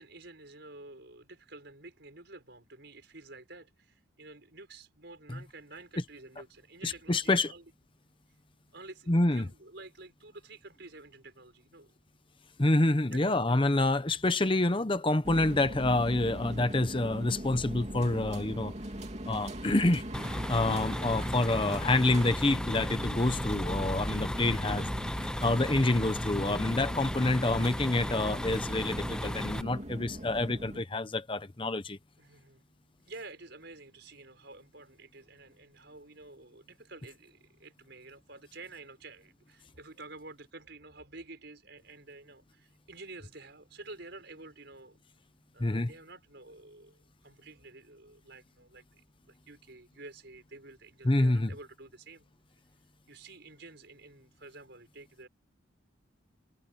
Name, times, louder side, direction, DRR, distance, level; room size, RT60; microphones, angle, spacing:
voice 1, 0.0-7.6 8.7-11.9 13.1-13.6 23.8-24.3 26.8-27.1 32.2-32.6 33.0-45.0 45.5-52.3 53.1-55.3, right 2 dB, 55° right, 6.2 m, -50 dB
voice 2, 6.8-7.5 9.1-9.4 12.6-18.7 19.3-20.0 20.5-24.9 25.4-32.0 45.6-45.9 51.0-51.5, left 2 dB, 25° left, 0.8 m, -27 dB
sound 1, 15.2-30.8, equal, 35° right, 2.9 m, -40 dB
sound 2, 20.1-29.6, left 1 dB, 5° left, 0.3 m, -35 dB
head